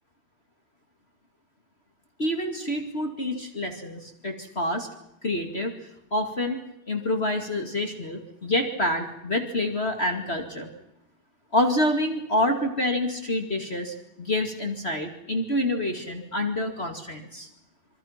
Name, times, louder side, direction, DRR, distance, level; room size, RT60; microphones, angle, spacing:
voice 1, 2.2-4.9 5.2-5.7 6.1-6.6 6.9-10.7 11.5-17.5, left 1 dB, 20° left, 4 dB, 1.8 m, -27 dB
26.5 x 24.5 x 5.9 m, 0.84 s
omnidirectional pair, 4.2 m